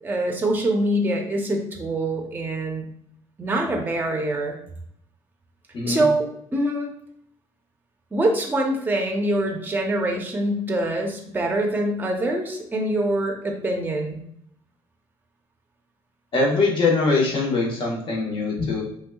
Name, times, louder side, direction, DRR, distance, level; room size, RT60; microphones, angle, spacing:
voice 1, 0.0-2.9 3.4-4.6 5.9-6.9 8.1-14.2, right 1 dB, 15° right, 1 dB, 0.7 m, -24 dB
voice 2, 5.7-6.1 16.3-18.8, left 3 dB, 45° left, -2 dB, 1.1 m, -22 dB
3.3 x 2.7 x 2.3 m, 0.70 s
cardioid pair, 115°, 11 cm